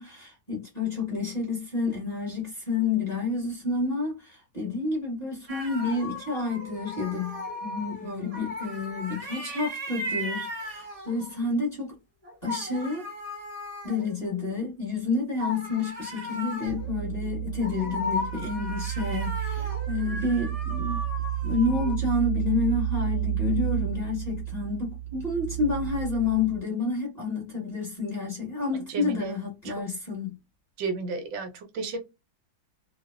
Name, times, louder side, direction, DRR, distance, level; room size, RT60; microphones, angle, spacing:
voice 1, 0.0-12.0 12.4-13.1 13.8-21.0 21.4-30.4, left 3 dB, 25° left, 1.1 m, -29 dB
sound 1, 5.5-11.4 12.2-14.7 15.4-22.0, left 1 dB, 30° right, 0.7 m, -37 dB
sound 2, 16.7-26.6, right 13 dB, 75° left, 1.2 m, -31 dB
voice 2, 28.9-29.3 29.6-29.8 30.8-32.0, right 4 dB, 80° right, 1.4 m, -33 dB
3.3 x 2.0 x 2.3 m
omnidirectional pair, 2.1 m